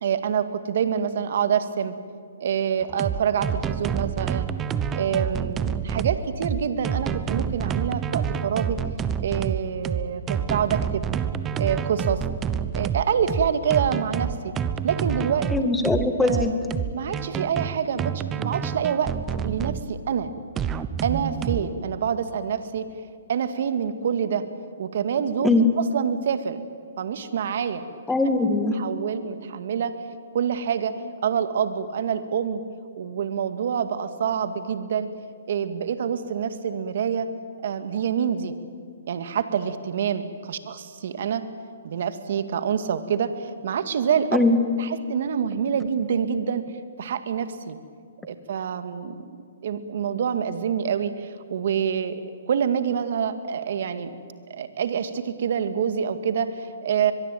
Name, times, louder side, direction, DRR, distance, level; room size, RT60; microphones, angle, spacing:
voice 1, 0.0-2.0 2.4-4.5 4.9-8.8 9.2-11.0 11.6-12.2 12.7-14.5 14.8-15.5 16.2-16.6 16.9-19.1 19.4-20.3 21.0-22.8 23.3-24.4 24.8-26.6 27.0-27.9 28.7-29.9 30.3-30.9 31.2-32.6 33.0-35.1 35.5-37.3 37.6-38.5 39.1-41.4 41.8-44.3 44.8-46.6 47.0-47.8 48.2-49.3 49.6-52.2 52.5-54.1 54.5-57.1, right 7 dB, 65° right, 10 dB, 2.0 m, -26 dB
sound 1, 2.8-19.8 20.6-21.7, right 8 dB, 20° right, 1.0 m, -28 dB
voice 2, 15.5-16.5 25.4-25.6 28.1-28.8 44.3-44.6, left 2 dB, 5° left, 6 dB, 2.2 m, -21 dB
23.5 x 22.0 x 9.2 m, 2.1 s
hypercardioid pair, 140°, 0 cm